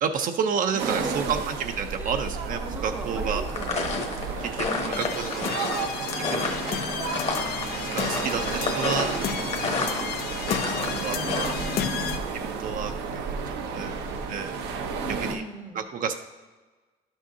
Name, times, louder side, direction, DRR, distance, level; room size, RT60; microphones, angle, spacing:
voice 1, 0.0-3.4 4.4-4.7 5.0-5.5 6.2-6.6 7.9-9.1 10.7-11.5 12.4-13.4 13.7-13.9 14.3-14.6 15.2-15.4 15.7-16.1, right 6 dB, 55° right, 6 dB, 0.5 m, -30 dB
voice 2, 0.7-1.4 2.0-2.2 2.6-4.0 4.7-5.2 8.9-9.5 11.8-12.1 15.0-15.8, right 1 dB, 10° right, 6 dB, 0.7 m, -38 dB
sound 1, 0.8-15.3, right 5 dB, 85° right, 0.8 m, -32 dB
sound 2, 3.5-11.5, left 3 dB, 40° left, 1.1 m, -31 dB
sound 3, 4.9-12.2, left 8 dB, 65° left, 0.5 m, -33 dB
11.0 x 6.3 x 2.7 m, 1.3 s
cardioid pair, 110°, 17 cm